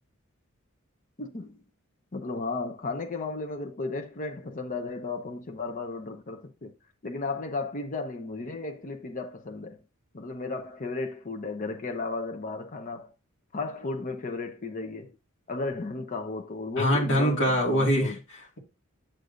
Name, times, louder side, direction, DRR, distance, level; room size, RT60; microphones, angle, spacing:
voice 1, 1.2-1.6 2.1-6.7 7.0-9.8 10.1-13.1 13.5-15.1 15.5-18.2, left 3 dB, 40° left, 0.8 m, -34 dB
voice 2, 16.8-18.6, equal, 60° left, 2.1 m, -24 dB
9.0 x 6.6 x 2.6 m
head